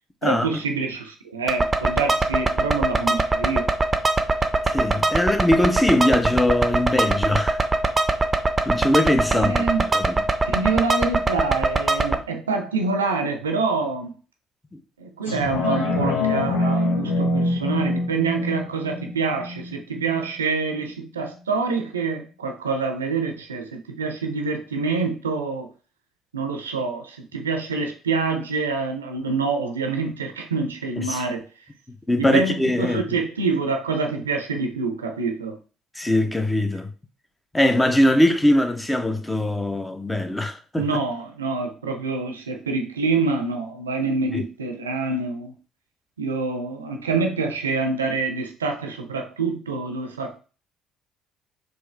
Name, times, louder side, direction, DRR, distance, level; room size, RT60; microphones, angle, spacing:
voice 1, 0.2-3.7 9.3-9.9 10.5-14.2 15.0-25.7 26.3-31.5 32.2-35.6 40.8-45.5 46.2-50.4, right 4 dB, 85° right, 0.5 m, -26 dB
sound 1, 1.5-12.1, right 2 dB, 25° right, 0.6 m, -22 dB
voice 2, 4.6-7.6 8.7-9.5 9.9-10.2 31.0-31.2 31.9-33.2 36.0-36.9 37.5-40.9 44.3-44.4, left 1 dB, 15° left, 0.7 m, -21 dB
sound 2, 15.3-20.3 20.7-20.8, left 2 dB, 85° left, 1.0 m, -25 dB
4.5 x 2.7 x 3.2 m
hypercardioid pair, 50°, 0 cm